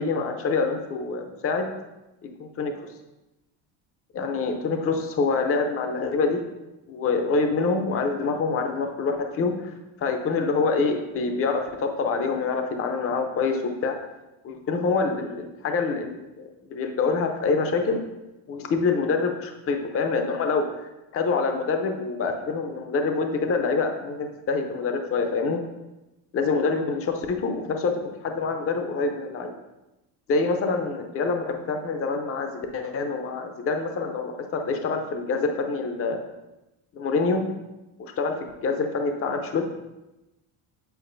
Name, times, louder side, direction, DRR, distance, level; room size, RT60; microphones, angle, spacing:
voice 1, 0.0-1.7 2.4-2.7 4.1-6.4 6.9-9.6 10.0-14.0 14.4-16.4 16.7-18.0 18.5-20.7 21.1-25.6 26.3-27.9 28.2-29.5 30.3-36.2 37.0-37.4 38.0-39.7, left 4 dB, 35° left, 5 dB, 0.6 m, -26 dB
8.0 x 4.7 x 2.6 m, 1.0 s
cardioid pair, 120°, 41 cm